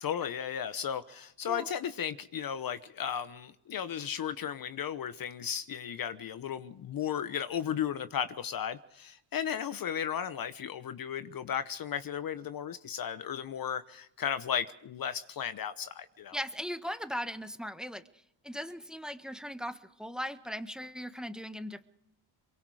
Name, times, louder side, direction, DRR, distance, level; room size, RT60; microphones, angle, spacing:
voice 1, 0.0-16.4, left 8 dB, 45° left, 1.0 m, -35 dB
voice 2, 16.3-18.0 18.4-21.8, equal, ahead, 1.5 m, -38 dB
23.5 x 23.5 x 4.9 m
supercardioid pair, 75°, 49 cm